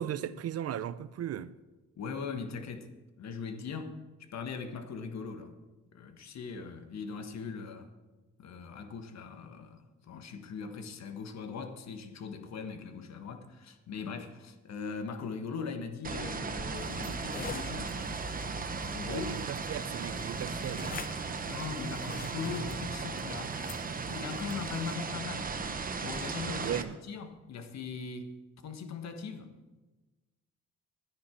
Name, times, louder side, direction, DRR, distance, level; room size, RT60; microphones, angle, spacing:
voice 1, 0.0-1.5 19.0-21.1 26.6-27.0, right 10 dB, 55° right, 0.6 m, -37 dB
voice 2, 2.0-2.9 3.2-3.9 4.2-5.5 5.9-7.9 8.4-18.2 18.9-19.3 21.4-26.8 27.1-28.3 28.6-29.5, left 5 dB, 60° left, 1.4 m, -40 dB
sound 1, 16.0-26.8, right 4 dB, 30° right, 0.9 m, -36 dB
sound 2, 16.7-25.0, left 6 dB, 30° left, 0.5 m, -47 dB
12.5 x 9.9 x 4.5 m
cardioid pair, 90°, 30 cm